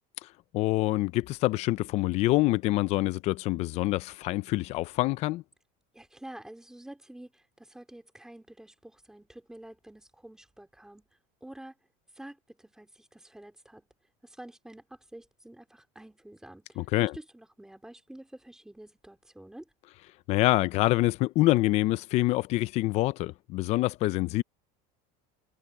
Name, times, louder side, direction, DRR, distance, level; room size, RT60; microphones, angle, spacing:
voice 1, 0.5-5.4 16.8-17.1 20.3-24.4, left 18 dB, 35° left, 0.4 m, -26 dB
voice 2, 5.9-11.1 11.4-11.7 12.1-13.9 14.2-19.7, right 1 dB, 5° right, 3.9 m, -48 dB
cardioid pair, 175°, 20 cm